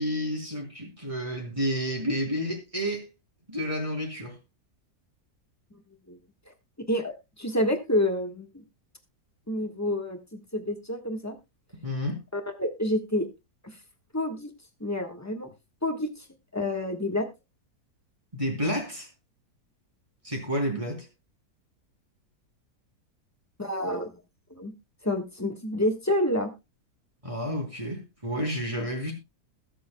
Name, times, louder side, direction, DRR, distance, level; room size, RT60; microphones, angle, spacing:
voice 1, 0.0-3.1 3.5-4.4 11.8-12.2 18.3-19.1 20.2-21.1 27.2-29.1, equal, 20° right, 3.4 m, -30 dB
voice 2, 6.9-8.6 9.5-11.4 12.3-13.3 13.6-13.7 14.1-14.5 14.8-15.5 15.8-16.2 16.5-17.3 23.6-24.1 24.6-24.7 25.0-26.5, left 1 dB, 10° left, 1.3 m, -28 dB
20.5 x 7.7 x 2.3 m
omnidirectional pair, 1.8 m